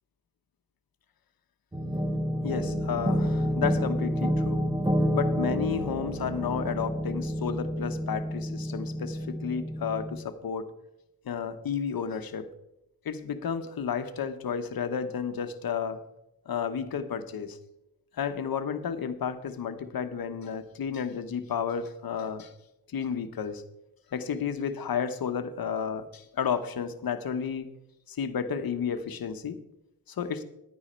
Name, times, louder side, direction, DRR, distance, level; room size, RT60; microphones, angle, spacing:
sound 1, 1.7-10.2, equal, 10° right, 1.1 m, -29 dB
voice 1, 2.4-4.7 5.1-10.7 11.2-12.5 13.0-16.0 16.5-17.6 18.2-22.5 22.9-23.6 24.1-27.7 28.1-29.6 30.1-30.4, left 7 dB, 65° left, 9 dB, 1.1 m, -32 dB
10.5 x 9.7 x 4.4 m, 0.87 s
cardioid pair, 70°, 38 cm